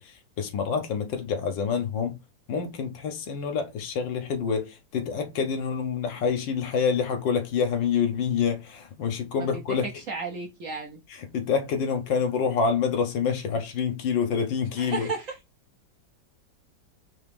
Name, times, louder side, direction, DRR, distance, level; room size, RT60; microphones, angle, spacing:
voice 1, 0.0-2.2 2.5-9.9 11.1-15.1, left 6 dB, 75° left, 1.6 m, -27 dB
voice 2, 9.4-11.0 14.8-15.4, right 4 dB, 65° right, 0.8 m, -34 dB
4.6 x 2.9 x 3.4 m
omnidirectional pair, 2.1 m